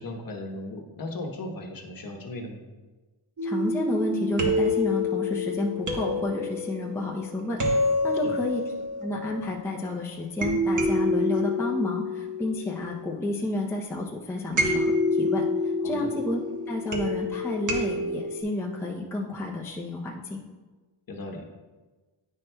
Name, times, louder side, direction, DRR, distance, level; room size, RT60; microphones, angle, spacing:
voice 1, 0.0-2.6 8.2-8.4 15.8-16.1 21.1-21.5, left 2 dB, 40° left, 2 dB, 1.0 m, -37 dB
voice 2, 3.4-7.6 8.0-8.6 9.0-16.4 16.7-20.4, left 2 dB, 5° left, -2 dB, 0.5 m, -31 dB
sound 1, 3.4-9.8 10.4-13.4 14.6-18.4, left 2 dB, 40° right, 1.1 m, -28 dB
9.7 x 5.9 x 2.2 m, 1.3 s
wide cardioid pair, 130°, 50 cm